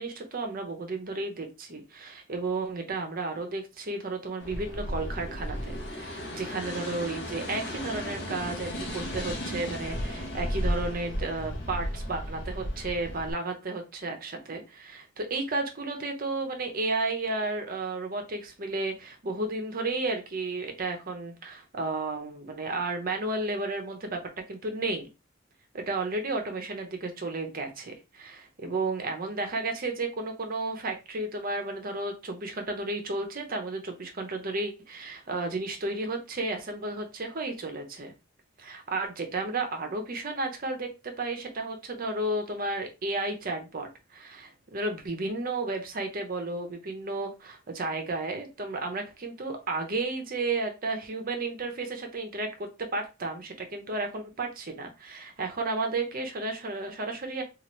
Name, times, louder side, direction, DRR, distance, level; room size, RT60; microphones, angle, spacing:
voice 1, 0.0-24.2 24.5-25.1 25.7-38.1 38.6-57.4, right 2 dB, 45° right, 5 dB, 0.7 m, -33 dB
sound 1, 4.4-13.3, equal, 60° left, 0.7 m, -34 dB
2.8 x 2.4 x 3.0 m, 0.28 s
head